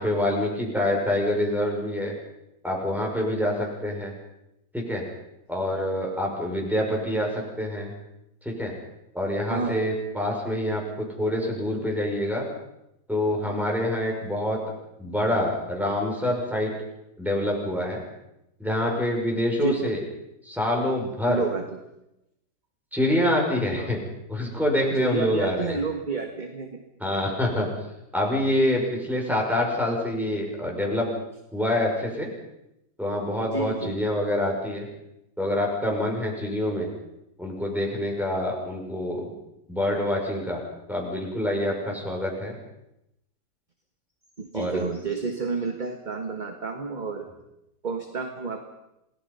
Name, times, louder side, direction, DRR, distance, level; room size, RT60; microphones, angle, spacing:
voice 1, 0.0-2.1 2.6-4.1 4.7-5.0 5.5-7.9 8.4-8.7 9.1-12.4 13.1-14.6 15.0-16.7 17.2-18.0 18.6-20.0 20.4-21.4 22.9-24.0 24.3-25.8 27.0-27.7 28.1-31.1 31.5-32.3 33.0-34.9 35.4-36.9 37.4-39.3 39.7-40.6 40.9-42.5 44.5-44.8, left 1 dB, ahead, -1 dB, 6.0 m, -26 dB
voice 2, 9.5-9.8 19.6-19.9 21.3-21.8 23.8-23.9 24.7-26.8 33.4-34.0 44.4-47.3 47.8-48.7, right 4 dB, 30° right, 5 dB, 1.6 m, -30 dB
28.0 x 18.5 x 5.6 m, 0.85 s
omnidirectional pair, 1.8 m